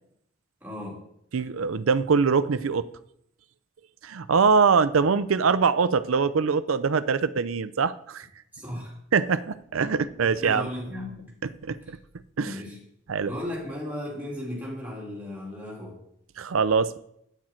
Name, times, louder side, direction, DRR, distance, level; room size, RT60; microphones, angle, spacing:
voice 1, 0.6-1.0 8.5-8.9 10.2-11.3 12.4-12.8 13.2-16.0, left 1 dB, 10° right, -5 dB, 3.1 m, -35 dB
voice 2, 1.3-2.8 4.0-8.3 9.1-10.7 11.6-12.0 12.4-12.6 13.1-13.3 16.4-17.0, right 5 dB, 85° right, 14 dB, 0.5 m, -23 dB
9.9 x 8.9 x 4.4 m, 0.74 s
head